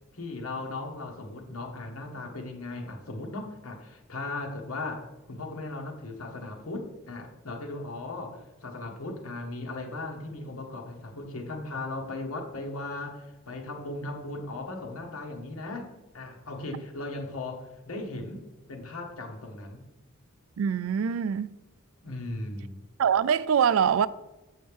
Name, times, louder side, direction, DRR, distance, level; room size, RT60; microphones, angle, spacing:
voice 1, 0.1-18.4 18.7-19.8 22.0-22.8, left 2 dB, 90° left, 1.3 m, -37 dB
voice 2, 20.6-21.5 23.0-24.1, right 7 dB, 70° right, 0.3 m, -24 dB
7.8 x 6.3 x 3.5 m
head